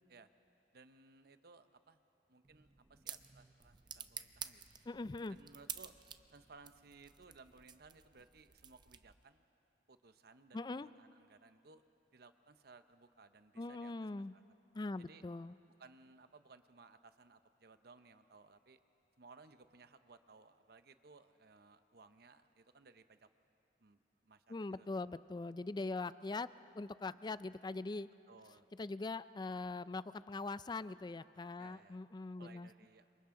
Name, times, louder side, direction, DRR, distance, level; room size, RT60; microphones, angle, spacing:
voice 1, 0.7-2.0 2.3-4.6 5.3-5.9 6.3-9.5 9.9-11.8 12.1-14.4 15.0-15.2 15.8-18.8 19.2-23.3 23.8-24.9 25.9-26.1 28.3-28.7 31.6-32.0 32.4-33.1, right 4 dB, 60° right, 10 dB, 0.8 m, -61 dB
sound 1, 2.4-9.3, right 7 dB, 25° right, 0.6 m, -51 dB
voice 2, 4.9-5.4 10.5-10.9 13.6-14.3 14.7-15.5 24.5-26.5 26.8-28.1 28.8-32.7, left 3 dB, 25° left, 15 dB, 0.4 m, -42 dB
29.5 x 27.0 x 3.8 m, 2.8 s
head